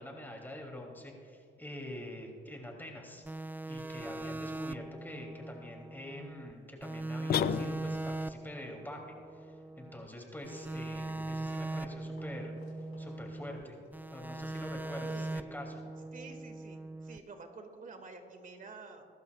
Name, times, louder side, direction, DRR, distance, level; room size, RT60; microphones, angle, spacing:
voice 1, 0.0-3.2 3.7-9.0 9.3-13.8 14.1-15.8, left 1 dB, 10° left, 0 dB, 2.8 m, -45 dB
sound 1, 3.3-6.5 6.8-10.1 10.4-13.6 13.9-17.2, right 2 dB, 10° right, 0.4 m, -40 dB
sound 2, 7.3-8.2, left 10 dB, 55° left, 0.4 m, -32 dB
Run, 10.7-16.0, left 3 dB, 85° left, 3.5 m, -62 dB
voice 2, 15.0-15.3 16.1-19.1, right 4 dB, 40° right, 5 dB, 2.0 m, -49 dB
22.0 x 12.0 x 2.4 m, 2.5 s
cardioid pair, 90°, 20 cm